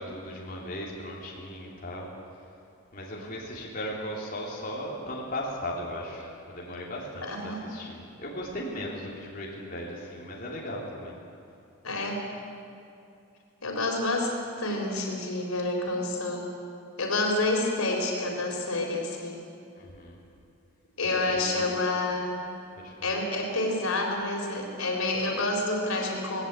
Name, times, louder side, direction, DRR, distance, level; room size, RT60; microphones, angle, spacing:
voice 1, 0.0-2.1 2.9-11.2 19.8-20.2 21.2-21.6 22.8-23.1, left 1 dB, 40° left, -4 dB, 3.5 m, -37 dB
voice 2, 7.2-7.6 11.8-12.2 13.6-14.3 14.6-16.5 17.0-19.4 21.0-22.4 23.0-26.4, left 2 dB, 90° left, 1 dB, 4.1 m, -28 dB
19.0 x 18.5 x 8.3 m, 2.6 s
head